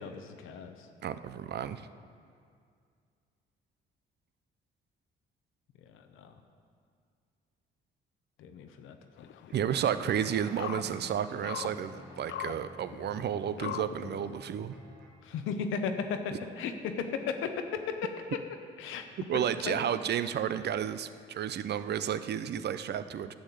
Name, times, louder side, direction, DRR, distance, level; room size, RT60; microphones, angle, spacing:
voice 1, 0.0-0.9 5.8-6.4 8.4-9.3 15.2-18.1 18.8-19.1 19.6-19.8, left 6 dB, 90° left, 6 dB, 0.9 m, -36 dB
voice 2, 1.0-1.8 9.5-14.7 19.3-23.3, right 9 dB, 55° right, 12 dB, 0.6 m, -32 dB
sound 1, 9.2-14.5, left 11 dB, 70° left, 0.4 m, -42 dB
sound 2, 10.2-15.4, right 1 dB, 80° right, 2.3 m, -50 dB
11.0 x 6.5 x 8.3 m, 2.2 s
cardioid pair, 90°, 20 cm